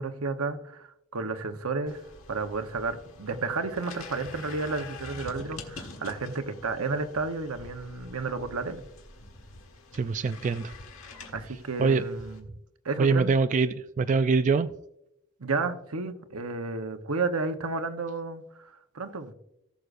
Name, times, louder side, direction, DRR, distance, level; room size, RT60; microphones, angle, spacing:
voice 1, 0.0-2.0 2.3-8.8 11.3-12.5 12.8-13.3 15.4-19.3, right 3 dB, 85° right, 7 dB, 0.9 m, -32 dB
sound 1, 1.9-12.4, left 3 dB, 65° left, 1.6 m, -46 dB
voice 2, 9.9-10.7 11.8-12.0 13.0-14.7, right 4 dB, 35° right, 11 dB, 0.3 m, -24 dB
18.5 x 6.5 x 2.5 m, 0.83 s
head